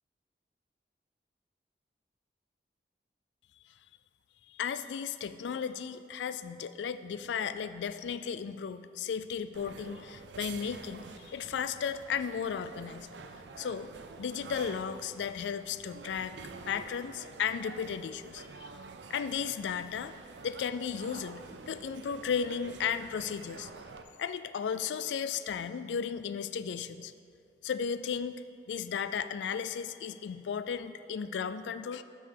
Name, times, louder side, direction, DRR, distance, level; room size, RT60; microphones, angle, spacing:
voice 1, 4.5-13.1 13.6-13.9 14.2-16.4 16.7-18.7 19.1-20.1 20.4-23.7 24.2-27.1 27.6-28.4 28.7-32.0, left 7 dB, 85° left, 13 dB, 0.3 m, -35 dB
sound 1, 9.5-24.0, right 4 dB, 85° right, 0.5 m, -48 dB
6.8 x 5.5 x 6.6 m, 2.4 s
head